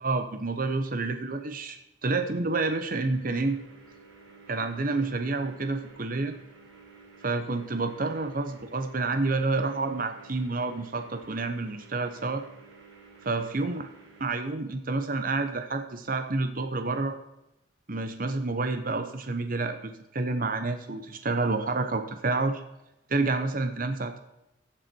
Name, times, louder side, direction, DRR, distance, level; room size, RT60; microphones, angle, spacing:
voice 1, 0.0-3.6 4.5-6.3 7.2-12.4 13.2-13.8 14.2-17.1 17.9-22.6 23.1-24.2, right 3 dB, 45° right, 7 dB, 1.0 m, -29 dB
sound 1, 2.5-14.4, right 4 dB, 80° right, 3.1 m, -53 dB
14.5 x 7.4 x 4.6 m, 0.89 s
head